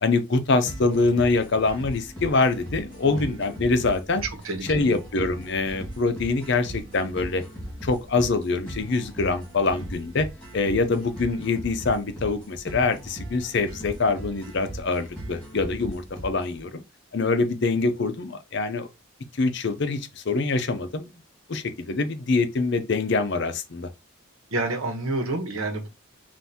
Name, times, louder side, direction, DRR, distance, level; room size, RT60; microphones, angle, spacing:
voice 1, 0.0-4.2 4.7-7.4 7.8-10.3 10.5-16.8 17.1-18.9 19.3-21.1 21.5-23.9, left 3 dB, 55° left, 0.6 m, -24 dB
sound 1, 0.7-16.6, right 1 dB, 5° left, 2.0 m, -39 dB
voice 2, 4.2-5.0 24.5-25.9, right 2 dB, 80° right, 1.1 m, -29 dB
5.5 x 2.6 x 2.8 m
head